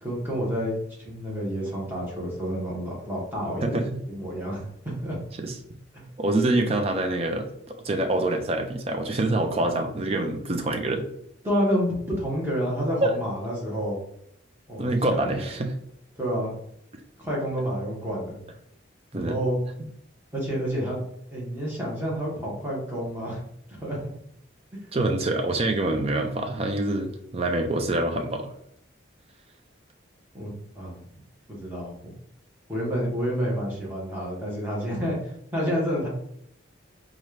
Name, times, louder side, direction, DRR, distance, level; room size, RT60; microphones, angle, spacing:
voice 1, 0.0-5.2 5.9-6.1 11.4-14.0 14.7-15.4 16.2-16.6 17.2-18.4 19.1-19.6 20.3-21.0 21.3-23.4 23.7-24.0 30.3-31.0 31.5-32.1 32.7-36.1, equal, 10° right, -5 dB, 1.2 m, -29 dB
voice 2, 6.2-11.1 13.0-13.1 14.8-15.7 19.1-19.4 24.9-28.5, right 2 dB, 30° right, 5 dB, 0.4 m, -25 dB
4.1 x 2.4 x 3.2 m, 0.71 s
head